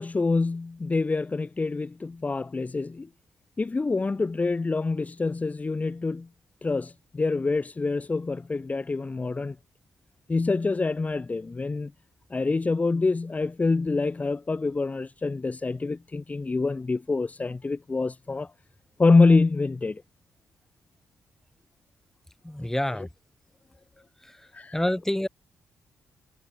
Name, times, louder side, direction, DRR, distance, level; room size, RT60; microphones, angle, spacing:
voice 1, 0.0-3.1 3.6-6.3 6.6-9.6 10.3-11.9 12.3-18.5 19.0-20.0 22.9-23.0 24.5-24.8, left 3 dB, 25° left, 2.8 m, -26 dB
voice 2, 22.4-23.1 24.2-24.4 24.7-25.3, left 1 dB, 5° left, 7.0 m, -27 dB
cardioid pair, 90°, 5 cm